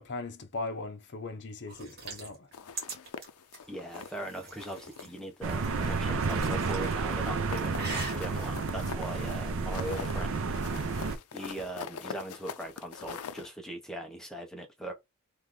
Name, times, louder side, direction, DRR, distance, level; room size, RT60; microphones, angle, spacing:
voice 1, 0.0-2.5, left 3 dB, 55° left, 0.8 m, -39 dB
sound 1, 1.7-5.1 5.6-7.0 7.4-8.2, right 3 dB, 45° right, 1.7 m, -42 dB
sound 2, 2.5-4.3 4.6-5.2 5.5-13.5, left 6 dB, 80° left, 0.5 m, -43 dB
voice 2, 3.7-10.5 10.8-14.9, right 1 dB, 5° left, 0.9 m, -40 dB
sound 3, 5.4-11.2, right 4 dB, 65° right, 0.6 m, -31 dB
3.3 x 3.2 x 3.8 m
head